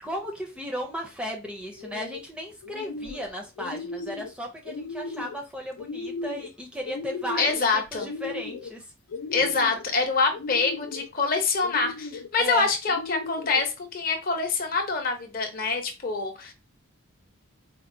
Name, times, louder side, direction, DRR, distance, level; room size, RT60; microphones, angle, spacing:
voice 1, 0.0-8.9 12.4-12.7, equal, 5° right, 0 dB, 0.5 m, -35 dB
sound 1, 1.7-2.2 2.6-3.3 3.6-4.3 4.6-5.4 5.8-6.5 6.8-7.6 8.0-8.7 9.1-9.8 10.3-11.1 11.6-12.3 12.8-13.6, left 4 dB, 85° left, 0.4 m, -36 dB
voice 2, 7.4-8.1 9.3-16.5, left 4 dB, 45° left, 5 dB, 0.7 m, -25 dB
4.4 x 2.2 x 2.6 m, 0.27 s
head